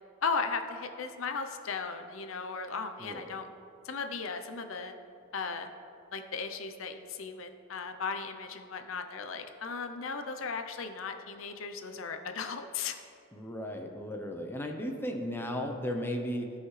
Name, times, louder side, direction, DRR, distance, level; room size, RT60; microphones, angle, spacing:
voice 1, 0.2-3.5 3.8-4.9 5.3-5.7 6.1-13.0, left 5 dB, 65° left, 7 dB, 0.6 m, -36 dB
voice 2, 13.3-16.5, equal, 10° left, 2 dB, 0.6 m, -35 dB
16.5 x 5.6 x 3.2 m, 2.5 s
head